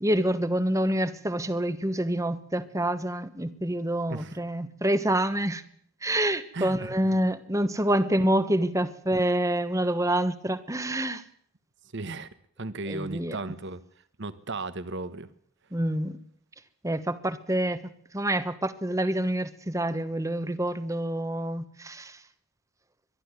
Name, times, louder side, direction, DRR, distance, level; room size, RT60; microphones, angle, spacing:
voice 1, 0.0-5.6 6.0-11.2 12.9-13.4 15.7-16.2 16.8-22.2, right 1 dB, 15° right, 12 dB, 1.2 m, -27 dB
voice 2, 6.5-7.2 11.9-12.3 12.6-13.8 14.2-15.3, right 2 dB, 55° right, 14 dB, 1.3 m, -35 dB
22.5 x 12.0 x 9.6 m, 0.65 s
head